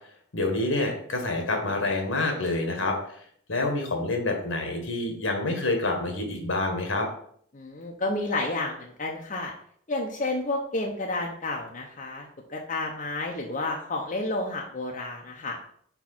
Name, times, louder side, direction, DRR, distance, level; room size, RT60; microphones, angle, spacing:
voice 1, 0.3-3.2 3.5-7.1, left 2 dB, 70° left, 3 dB, 1.5 m, -27 dB
voice 2, 7.5-9.5 9.9-15.6, left 2 dB, 40° left, 0 dB, 0.7 m, -31 dB
4.7 x 4.6 x 5.9 m, 0.62 s
head